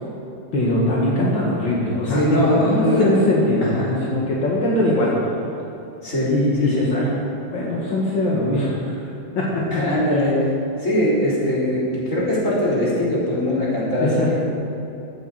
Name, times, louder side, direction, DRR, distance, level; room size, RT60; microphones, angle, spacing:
voice 1, 0.5-5.1 6.2-7.1 7.5-9.0 9.4-9.8 10.1-10.2 13.9-14.3, left 1 dB, 85° left, -5 dB, 2.7 m, -21 dB
voice 2, 2.1-3.2 3.6-4.0 6.0-6.3 6.6-6.9 9.7-10.4 10.8-14.1, left 1 dB, 40° left, -8 dB, 4.5 m, -21 dB
14.5 x 8.6 x 7.6 m, 2.9 s
omnidirectional pair, 2.0 m